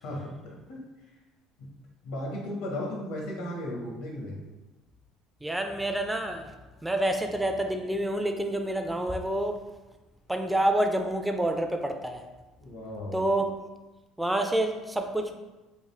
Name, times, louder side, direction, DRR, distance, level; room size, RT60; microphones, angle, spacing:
voice 1, 0.0-0.8 1.6-1.7 2.0-4.4 12.6-13.3, left 1 dB, 85° left, -2 dB, 0.9 m, -36 dB
voice 2, 5.4-6.5 6.8-9.6 10.3-12.2 13.1-13.5 14.2-15.3, right 1 dB, 5° right, 5 dB, 0.3 m, -28 dB
3.6 x 2.4 x 3.2 m, 1.1 s
cardioid pair, 115°, 0 cm